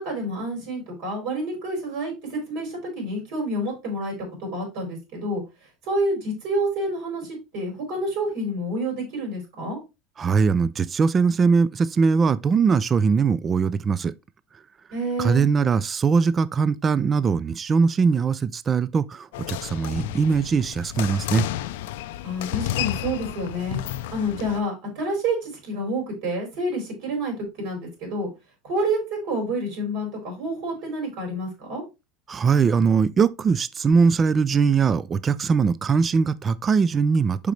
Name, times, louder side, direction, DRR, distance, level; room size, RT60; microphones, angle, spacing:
voice 1, 0.0-4.1 4.4-5.4 5.8-9.8 14.9-15.5 22.2-23.8 24.1-28.3 28.6-31.8, right 1 dB, 60° right, 4.4 m, -28 dB
voice 2, 10.2-14.1 15.2-21.5 32.3-37.5, right 5 dB, 20° right, 0.3 m, -21 dB
sound 1, 19.3-24.6, left 13 dB, 85° left, 0.4 m, -31 dB
6.6 x 5.1 x 3.2 m
supercardioid pair, 150°, 0 cm